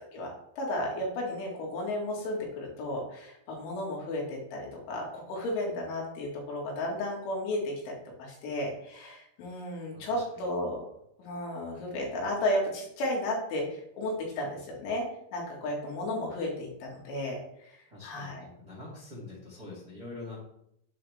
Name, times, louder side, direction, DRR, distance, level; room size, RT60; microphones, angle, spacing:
voice 1, 0.1-10.9 11.2-15.1 15.3-17.8 18.0-18.4, left 1 dB, 70° left, -1 dB, 4.3 m, -33 dB
voice 2, 9.9-10.6 17.9-20.4, left 2 dB, 30° right, -5 dB, 1.9 m, -45 dB
9.4 x 8.3 x 3.5 m, 0.75 s
omnidirectional pair, 5.9 m